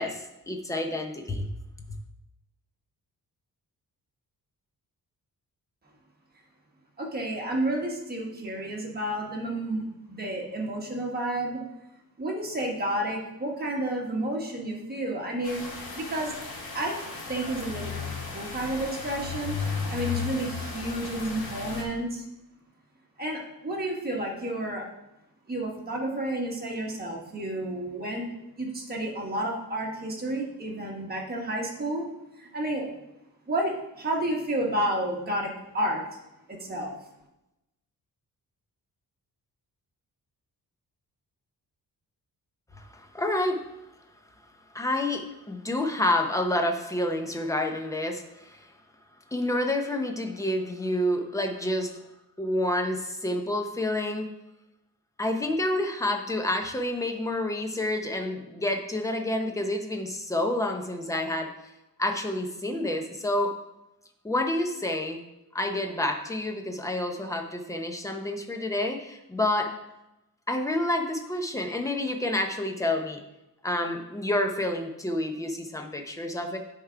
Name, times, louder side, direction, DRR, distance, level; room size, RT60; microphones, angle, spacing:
voice 1, 0.0-1.5 1.9-2.0 42.7-43.7 44.7-48.7 49.3-51.9 52.4-54.3 55.2-61.5 62.0-63.5 64.2-65.2 65.5-69.7 70.5-73.2 73.6-76.6, left 1 dB, 10° left, 4 dB, 0.7 m, -29 dB
voice 2, 7.0-11.6 12.2-16.4 16.7-17.0 17.3-17.9 18.3-19.6 19.9-22.2 23.2-24.8 25.5-28.3 28.6-32.0 32.4-32.9 33.5-36.0 36.5-36.9, right 1 dB, 25° right, -1 dB, 1.4 m, -31 dB
sound 1, 15.4-21.8, left 5 dB, 90° left, 2.0 m, -35 dB
10.0 x 3.7 x 4.6 m, 0.92 s
wide cardioid pair, 165°, 36 cm